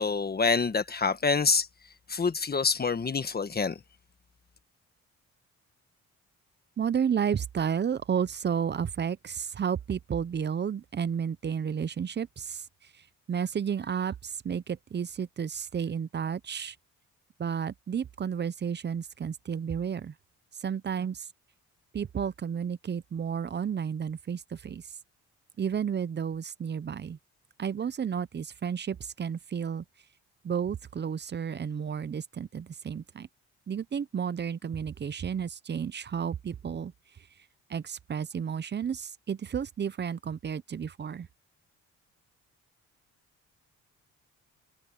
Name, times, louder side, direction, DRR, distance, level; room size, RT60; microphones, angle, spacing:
voice 1, 0.0-1.7 2.1-3.8, left 4 dB, 30° left, 1.5 m, -26 dB
voice 2, 6.8-12.7 13.3-16.8 17.4-20.1 20.6-21.3 21.9-24.8 25.6-27.2 27.6-29.8 30.4-33.3 33.7-36.9 37.7-41.3, right 7 dB, 35° right, 0.7 m, -32 dB
cardioid pair, 90°, 30 cm